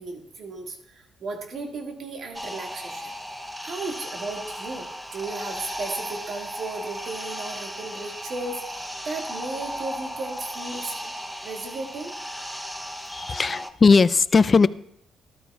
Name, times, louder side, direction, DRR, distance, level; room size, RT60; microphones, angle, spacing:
voice 1, 0.0-3.2 3.6-11.1 11.4-12.2 13.3-13.4, right 3 dB, 60° right, 2 dB, 1.8 m, -35 dB
sound 1, 2.3-13.7, equal, 5° right, 0.6 m, -35 dB
voice 2, 13.1-14.7, left 4 dB, 35° left, 16 dB, 0.4 m, -18 dB
13.0 x 12.0 x 2.3 m, 0.72 s
cardioid pair, 90°, 0 cm